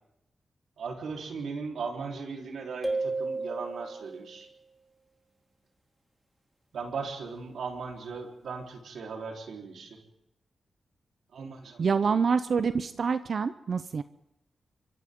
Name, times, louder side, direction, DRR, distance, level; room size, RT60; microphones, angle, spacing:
voice 1, 0.8-4.5 6.7-10.0 11.3-12.2, right 5 dB, 85° right, 1 dB, 3.9 m, -38 dB
sound 1, 2.8-4.3, right 3 dB, 10° right, 2.9 m, -32 dB
voice 2, 11.8-14.0, right 5 dB, 60° right, 11 dB, 0.7 m, -26 dB
29.5 x 24.5 x 3.8 m, 0.82 s
cardioid pair, 85°, 0 cm